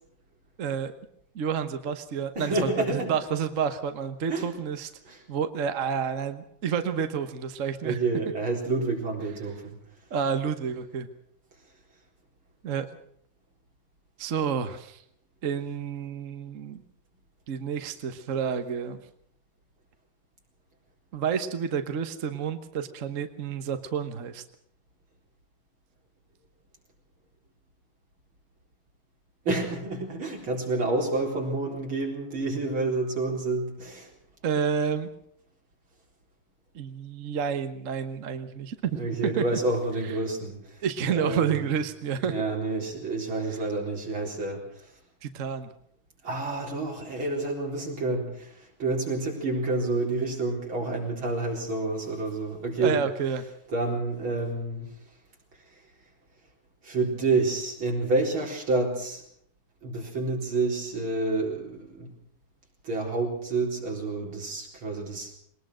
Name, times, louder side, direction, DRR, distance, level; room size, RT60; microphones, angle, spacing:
voice 1, 0.6-0.9 1.3-4.9 5.3-8.0 10.1-11.1 12.6-12.9 14.2-15.0 15.4-16.8 17.5-19.0 21.1-24.4 34.4-35.1 36.7-39.4 40.0-40.2 40.8-42.3 45.2-45.7 52.8-53.4, right 7 dB, 45° right, 9 dB, 1.3 m, -29 dB
voice 2, 2.4-3.1 4.3-4.5 5.1-5.2 7.8-9.8 29.4-34.1 38.9-41.7 42.2-44.6 46.2-53.0 53.7-54.9 56.8-59.2 59.8-62.1 62.8-65.3, right 3 dB, 80° right, 0 dB, 5.0 m, -29 dB
21.0 x 19.5 x 6.3 m, 0.67 s
omnidirectional pair, 2.2 m